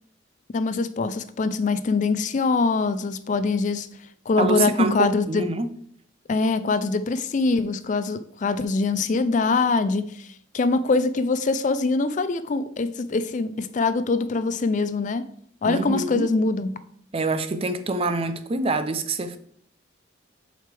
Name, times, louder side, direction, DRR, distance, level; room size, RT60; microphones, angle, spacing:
voice 1, 0.5-3.9 4.3-5.5 6.3-10.3 10.5-15.3 15.6-16.8, left 3 dB, 40° left, 0.4 m, -23 dB
voice 2, 4.4-5.7 15.6-16.3 17.1-19.4, right 3 dB, 30° right, 0.5 m, -26 dB
7.5 x 5.0 x 3.4 m
head